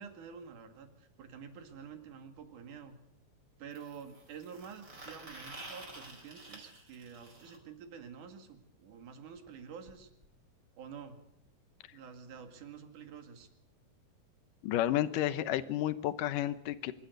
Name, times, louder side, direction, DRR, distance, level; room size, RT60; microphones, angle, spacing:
voice 1, 0.0-2.9 3.6-10.1 10.8-11.2 11.9-13.5, right 7 dB, 65° right, 7 dB, 3.4 m, -49 dB
sound 1, 1.7-1.8 3.7-7.6 9.5-9.6 9.9-10.0 10.2-10.4 11.3-11.4, right 2 dB, 20° right, 4.7 m, -50 dB
voice 2, 14.6-16.9, left 13 dB, 75° left, 14 dB, 2.4 m, -31 dB
25.5 x 13.0 x 8.0 m, 0.78 s
omnidirectional pair, 4.0 m